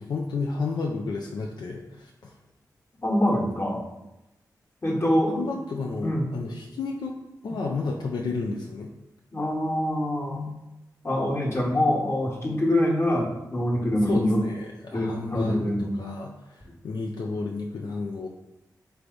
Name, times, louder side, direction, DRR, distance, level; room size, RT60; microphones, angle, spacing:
voice 1, 0.0-2.3 5.3-7.2 7.4-8.9 14.1-18.3, left 4 dB, 75° left, 0 dB, 0.4 m, -32 dB
voice 2, 3.0-3.8 4.8-5.5 6.0-6.3 9.3-10.5 11.0-14.4 14.9-16.0, left 1 dB, 35° left, -2 dB, 1.3 m, -25 dB
3.4 x 3.2 x 3.9 m, 0.93 s
cardioid pair, 40°, 7 cm